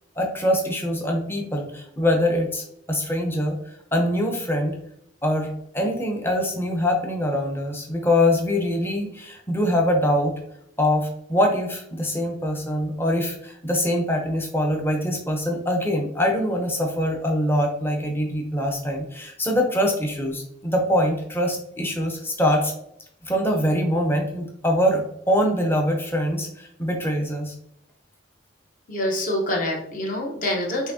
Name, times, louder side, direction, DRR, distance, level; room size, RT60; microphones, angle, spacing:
voice 1, 0.2-3.6 3.9-4.8 5.2-10.3 10.8-22.7 23.2-27.5, left 1 dB, 10° left, 2 dB, 0.6 m, -23 dB
voice 2, 28.9-30.9, left 1 dB, 40° left, 0 dB, 0.9 m, -26 dB
5.7 x 2.7 x 2.7 m, 0.74 s
head